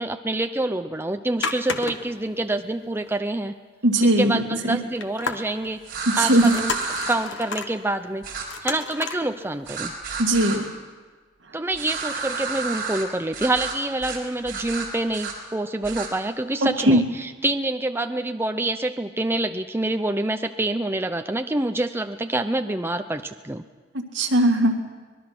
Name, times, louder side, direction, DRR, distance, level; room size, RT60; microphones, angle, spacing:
voice 1, 0.0-3.5 4.2-5.8 6.2-6.7 7.1-8.2 8.6-9.9 11.5-23.6, right 2 dB, 10° right, 7 dB, 0.7 m, -26 dB
sound 1, 1.4-2.3 2.6-2.7 3.0-3.1 5.0-5.7 6.2-7.7 8.4-9.2 9.7-9.8, left 4 dB, 75° left, 1.5 m, -31 dB
voice 2, 3.8-4.8 6.1-6.5 10.2-10.7 16.6-17.0 24.1-24.7, right 1 dB, 70° right, 2 dB, 2.4 m, -19 dB
sound 2, 5.8-7.1 8.2-8.4 9.7-10.6 11.7-13.0 13.3-13.7 14.0-14.2 14.4-15.3 15.8-16.1, right 4 dB, 55° right, 4.8 m, -31 dB
24.5 x 20.5 x 6.1 m, 1.4 s
head